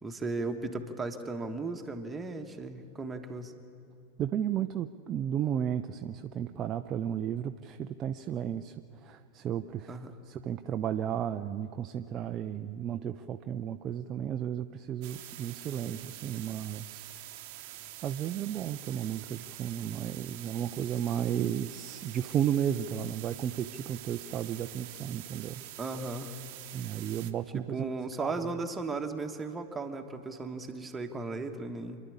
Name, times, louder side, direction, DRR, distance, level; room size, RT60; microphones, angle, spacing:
voice 1, 0.0-3.5 9.9-10.1 25.8-26.3 27.5-32.0, right 3 dB, 15° right, 5 dB, 1.4 m, -36 dB
voice 2, 4.2-10.0 10.3-17.1 18.0-25.6 26.7-27.9 28.2-28.5, right 9 dB, 30° right, 8 dB, 0.5 m, -33 dB
sound 1, 15.0-27.3, right 14 dB, 45° right, 1.0 m, -46 dB
27.0 x 11.0 x 8.6 m, 2.5 s
figure-of-eight pair, 90°, 0 cm